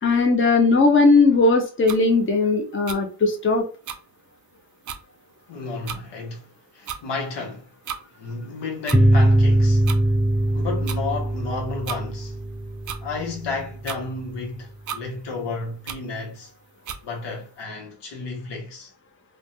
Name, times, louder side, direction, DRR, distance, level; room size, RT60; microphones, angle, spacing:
voice 1, 0.0-3.6, left 3 dB, 30° left, 0.9 m, -18 dB
sound 1, 1.9-2.0 2.9-3.0 3.8-4.0 4.5-4.6 4.8-5.0 5.9-6.0 6.8-7.0 7.8-8.0 8.9-9.0 9.9-10.0 10.9-11.0 11.9-12.0 12.8-13.0 13.8-14.0 14.9-15.0 15.9-16.0 16.8-17.0, right 8 dB, 45° right, 0.5 m, -33 dB
voice 2, 5.5-7.7 8.2-9.9 10.5-12.4 13.0-16.5 17.0-18.9, left 3 dB, 75° left, 1.0 m, -32 dB
sound 2, 8.9-14.1, right 1 dB, 5° right, 0.7 m, -21 dB
3.2 x 2.2 x 2.6 m
cardioid pair, 75°, 43 cm